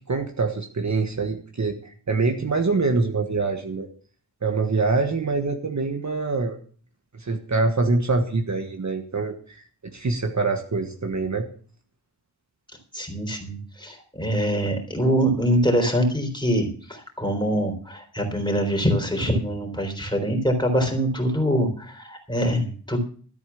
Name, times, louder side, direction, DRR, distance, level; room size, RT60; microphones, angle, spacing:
voice 1, 0.0-3.9 4.4-6.6 7.1-9.6 9.8-11.5, right 3 dB, 40° right, 4 dB, 1.5 m, -25 dB
voice 2, 12.9-23.0, equal, 10° left, 3 dB, 3.9 m, -24 dB
13.5 x 8.3 x 7.1 m, 0.43 s
wide cardioid pair, 120°, 41 cm